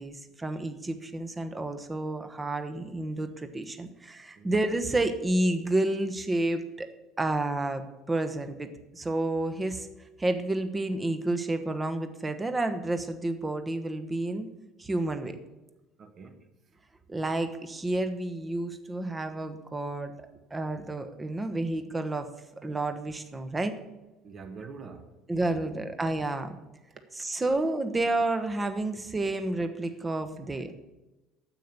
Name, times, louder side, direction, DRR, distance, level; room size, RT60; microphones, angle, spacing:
voice 1, 0.0-6.9 7.2-9.9 10.2-14.5 14.8-15.4 17.1-20.1 20.5-22.3 22.6-23.7 25.3-26.6 27.2-30.7, right 2 dB, 15° right, 1.2 m, -30 dB
voice 2, 16.0-16.4 24.2-25.2 25.5-25.8, right 4 dB, 35° right, 1.4 m, -45 dB
9.2 x 7.9 x 7.0 m
figure-of-eight pair, 60°, 0 cm